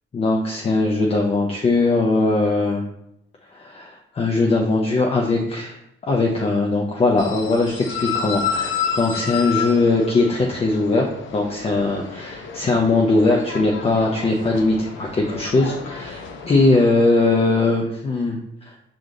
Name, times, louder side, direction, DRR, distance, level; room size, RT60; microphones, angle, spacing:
voice 1, 0.1-2.8 3.5-18.4 18.6-18.7, left 3 dB, 30° left, 0 dB, 0.6 m, -20 dB
sound 1, 7.2-16.8, left 6 dB, 70° left, 0.6 m, -30 dB
5.0 x 2.5 x 3.7 m, 0.77 s
cardioid pair, 90°, 20 cm